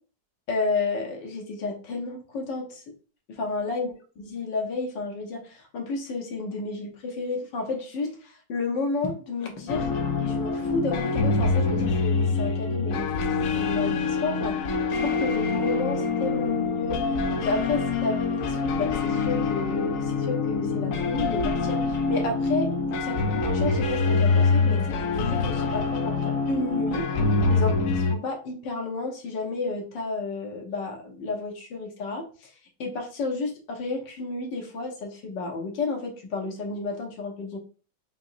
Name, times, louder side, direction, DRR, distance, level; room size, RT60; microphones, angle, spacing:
voice 1, 0.5-2.9 3.4-9.9 10.2-22.7 23.0-27.1 27.5-37.6, left 3 dB, 80° left, 2 dB, 1.7 m, -32 dB
sound 1, 9.7-28.2, left 4 dB, 65° left, 0.9 m, -25 dB
5.2 x 2.9 x 2.6 m, 0.38 s
omnidirectional pair, 1.9 m